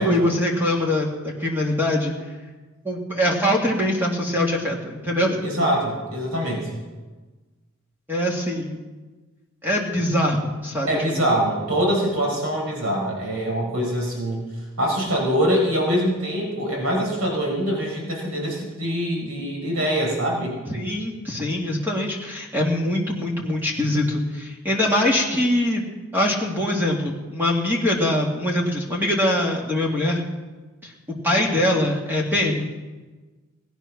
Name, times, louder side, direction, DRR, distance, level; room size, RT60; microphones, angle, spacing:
voice 1, 0.0-2.1 2.8-5.5 8.1-8.8 9.6-11.3 20.7-25.8 26.1-30.2 30.8-30.9 31.2-32.7, left 1 dB, 10° right, -2 dB, 2.1 m, -23 dB
voice 2, 5.4-6.8 10.9-14.5 14.8-20.6, equal, 85° right, -1 dB, 4.7 m, -24 dB
19.5 x 10.5 x 5.9 m, 1.3 s
head